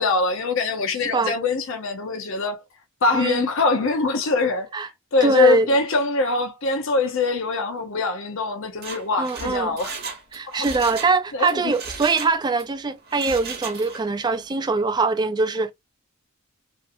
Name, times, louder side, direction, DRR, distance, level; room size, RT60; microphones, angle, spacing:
voice 1, 0.0-2.6 3.0-4.7 5.1-9.9 10.5-10.7 11.3-11.7, left 3 dB, 60° left, 0.6 m, -23 dB
voice 2, 3.1-3.4 4.7-4.9 5.2-5.7 9.2-9.8 10.3-15.7, right 4 dB, 20° right, 0.3 m, -22 dB
Mechanisms, 8.7-11.2 11.5-12.7 13.1-14.1 14.4-14.5, right 5 dB, 45° right, 0.8 m, -35 dB
2.5 x 2.5 x 2.5 m
head